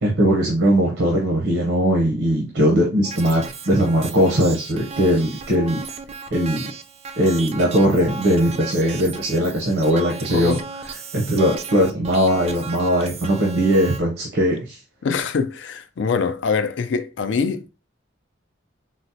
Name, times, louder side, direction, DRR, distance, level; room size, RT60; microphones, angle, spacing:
voice 1, 0.0-5.8 6.3-6.7 7.2-10.6 11.1-14.8, equal, 80° right, 0.7 m, -19 dB
sound 1, 3.0-14.0, right 5 dB, 35° right, 0.3 m, -35 dB
voice 2, 10.3-10.6 15.0-17.7, left 5 dB, 75° left, 0.4 m, -24 dB
3.9 x 2.1 x 2.7 m
head